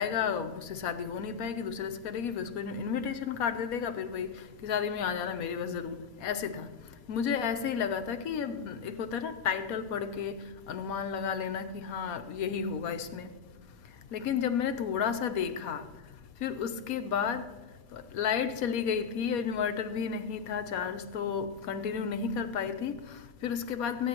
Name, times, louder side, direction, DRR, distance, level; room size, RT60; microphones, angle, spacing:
voice 1, 0.0-13.4 14.1-15.9 16.4-17.5 17.9-24.1, left 7 dB, 80° left, 1.2 m, -32 dB
23.0 x 9.3 x 2.9 m
omnidirectional pair, 1.5 m